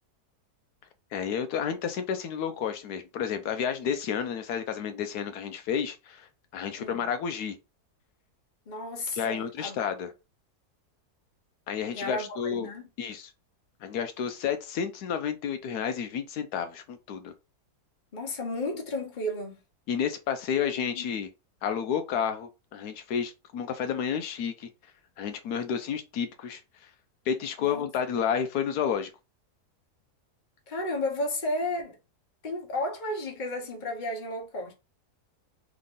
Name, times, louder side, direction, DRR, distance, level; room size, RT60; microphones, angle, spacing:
voice 1, 1.1-7.6 9.2-10.1 11.7-12.7 13.0-13.3 13.8-17.3 19.9-21.3 21.6-24.7 25.2-26.9 27.3-29.1, left 7 dB, 80° left, 1.2 m, -31 dB
voice 2, 8.7-9.8 11.9-12.9 18.1-19.6 20.8-21.1 27.6-27.9 30.7-32.0 32.4-34.7, left 1 dB, 30° left, 1.2 m, -33 dB
3.9 x 3.6 x 3.6 m
omnidirectional pair, 1.7 m